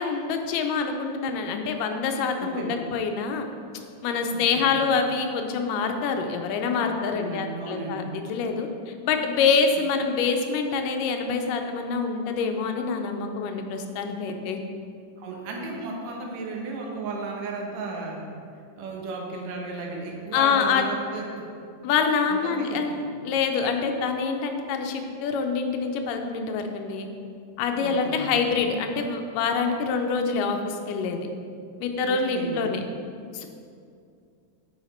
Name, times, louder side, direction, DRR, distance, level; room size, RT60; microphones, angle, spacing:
voice 1, 0.0-3.5 4.0-14.6 20.3-20.9 21.8-23.0 23.3-27.1 27.6-31.2 31.8-32.8 33.3-33.5, left 5 dB, 90° left, 5 dB, 2.3 m, -26 dB
voice 2, 2.4-2.8 4.3-4.7 7.1-8.0 15.2-18.2 18.8-21.5 22.3-23.0 27.8-28.3 32.1-32.6, right 3 dB, 85° right, 0 dB, 2.6 m, -34 dB
8.8 x 4.9 x 4.3 m, 2.4 s
omnidirectional pair, 3.7 m